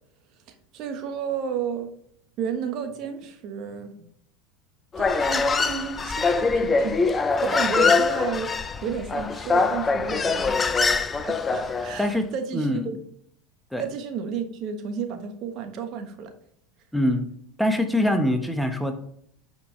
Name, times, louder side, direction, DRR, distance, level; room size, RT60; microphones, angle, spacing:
voice 1, 0.7-1.9 2.4-4.1 5.0-7.0 7.4-8.5 8.8-10.8 11.2-13.0 13.8-16.3, right 7 dB, 50° right, 7 dB, 1.2 m, -32 dB
Human voice, 4.9-12.0, left 4 dB, 25° left, 0.6 m, -23 dB
voice 2, 12.0-13.0 13.7-13.9 16.9-17.2 17.6-18.9, left 1 dB, ahead, 6 dB, 1.1 m, -24 dB
10.0 x 5.0 x 3.2 m, 0.67 s
hypercardioid pair, 85°, 0 cm